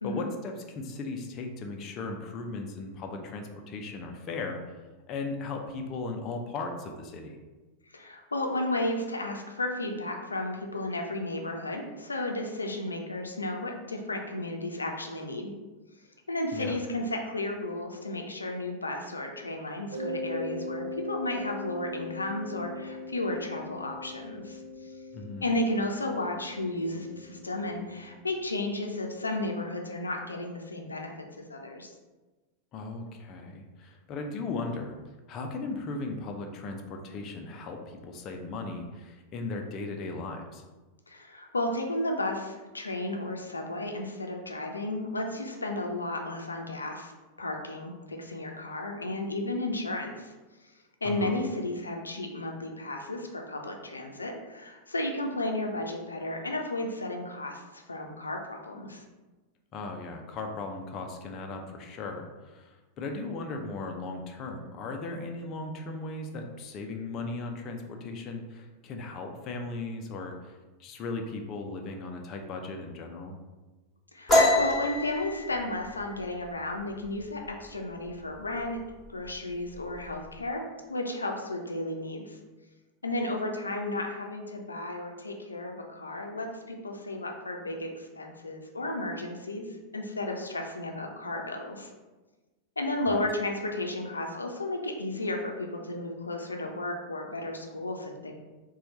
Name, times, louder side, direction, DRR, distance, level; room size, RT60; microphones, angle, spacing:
voice 1, 0.0-4.6 5.1-7.4 16.5-16.8 25.1-25.5 32.7-35.0 35.3-40.6 51.0-51.4 59.7-73.4 93.1-93.2, left 3 dB, 35° left, 3 dB, 0.5 m, -37 dB
voice 2, 7.9-15.5 16.3-24.9 25.4-31.9 41.1-47.1 47.4-50.3 51.0-59.0 74.1-78.8 79.1-80.6 80.9-82.4 83.0-89.7 89.9-91.9 92.8-98.3, left 1 dB, 80° left, 2 dB, 0.6 m, -33 dB
Mallet percussion, 19.9-28.5, left 1 dB, 65° right, 0.7 m, -40 dB
sound 1, 74.3-77.7 78.1-78.4 78.8-79.3 79.5-80.3, left 1 dB, 15° left, 1.2 m, -26 dB
4.4 x 2.3 x 4.0 m, 1.2 s
figure-of-eight pair, 90°, 0 cm